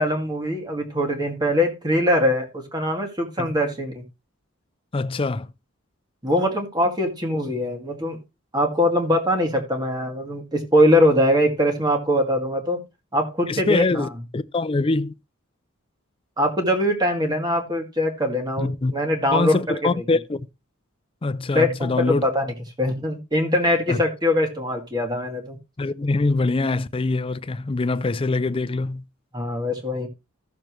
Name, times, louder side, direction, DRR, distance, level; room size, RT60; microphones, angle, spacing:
voice 1, 0.0-4.0 6.2-8.2 8.5-12.8 13.1-14.1 16.4-20.0 21.5-22.5 22.8-25.6 29.3-30.1, left 1 dB, 20° right, 2.0 m, -22 dB
voice 2, 4.9-5.5 13.5-15.1 18.6-18.9 19.3-20.4 21.2-22.2 23.9-24.0 25.8-29.0, left 3 dB, 25° left, 0.4 m, -23 dB
14.5 x 6.7 x 3.1 m
head